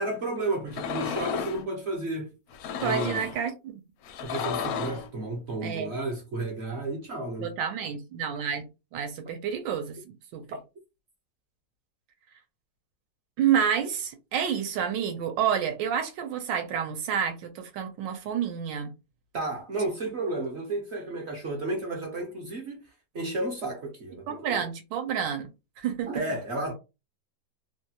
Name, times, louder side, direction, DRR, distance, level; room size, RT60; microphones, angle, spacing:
voice 1, 0.0-2.3 2.8-3.2 4.2-7.5 19.3-22.8 23.1-24.7 26.0-26.7, right 2 dB, 55° right, 0.7 m, -32 dB
sound 1, 0.7-1.6 2.5-3.4 4.0-5.1, left 7 dB, 75° left, 0.8 m, -33 dB
voice 2, 2.8-3.8 5.6-5.9 7.4-10.4 13.4-18.9 24.3-25.5 25.8-26.2, right 8 dB, 80° right, 1.3 m, -29 dB
3.1 x 2.2 x 2.8 m
omnidirectional pair, 2.0 m